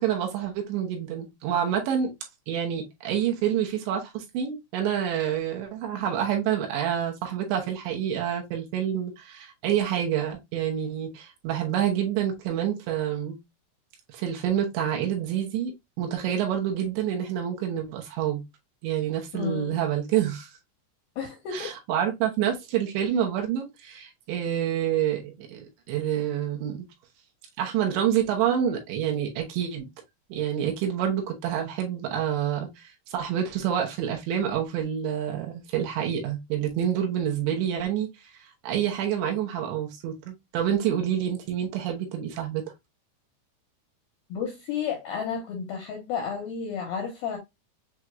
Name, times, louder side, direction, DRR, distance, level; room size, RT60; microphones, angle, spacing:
voice 1, 0.0-2.1 2.5-13.4 14.1-15.7 16.0-18.4 18.8-20.5 21.5-26.9 27.6-29.9 30.3-38.1 38.6-42.6, right 9 dB, 75° right, 3.0 m, -27 dB
voice 2, 19.3-19.8 21.2-21.7 44.3-47.4, left 6 dB, 75° left, 2.1 m, -32 dB
7.7 x 2.6 x 2.2 m
omnidirectional pair, 5.5 m